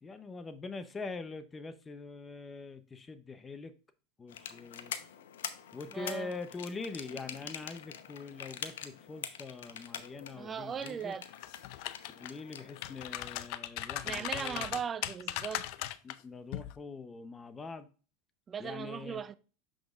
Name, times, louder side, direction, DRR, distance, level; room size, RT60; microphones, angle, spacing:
voice 1, 0.0-3.7 4.2-4.9 5.7-11.1 12.2-14.8 16.0-17.9 18.6-19.2, left 4 dB, 20° left, 0.7 m, -43 dB
sound 1, 4.3-13.5, left 9 dB, 85° left, 0.8 m, -45 dB
voice 2, 5.9-6.3 10.3-11.2 14.0-15.7 18.5-19.4, right 7 dB, 25° right, 0.5 m, -38 dB
sound 2, 11.3-12.3 12.7-16.2 16.5-16.7, left 14 dB, 60° left, 0.5 m, -38 dB
6.7 x 6.2 x 2.4 m
supercardioid pair, 115°, 0 cm